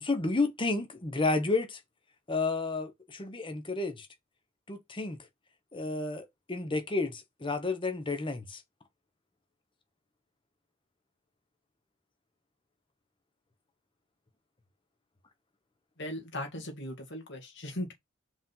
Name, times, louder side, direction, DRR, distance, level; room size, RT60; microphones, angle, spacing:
voice 1, 0.0-1.8 2.3-4.1 4.7-5.2 5.7-8.6, left 3 dB, 25° left, 1.1 m, -31 dB
voice 2, 16.0-17.9, left 1 dB, 60° left, 2.2 m, -38 dB
5.1 x 3.9 x 5.7 m
head